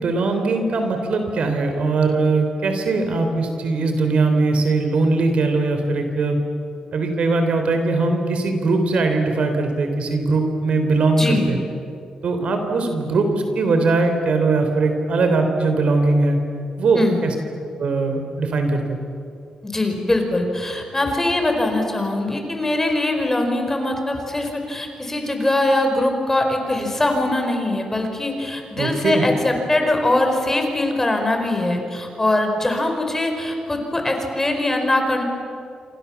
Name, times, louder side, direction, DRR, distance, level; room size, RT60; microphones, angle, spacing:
voice 1, 0.0-6.4 6.9-11.6 12.2-13.3 13.6-16.4 16.8-17.3 17.8-19.0 28.8-29.2, right 3 dB, 65° right, 6 dB, 3.8 m, -20 dB
voice 2, 11.2-11.5 16.9-17.2 19.6-35.2, left 2 dB, 20° left, 4 dB, 4.8 m, -22 dB
28.0 x 26.0 x 7.2 m, 2.5 s
cardioid pair, 105°, 2 cm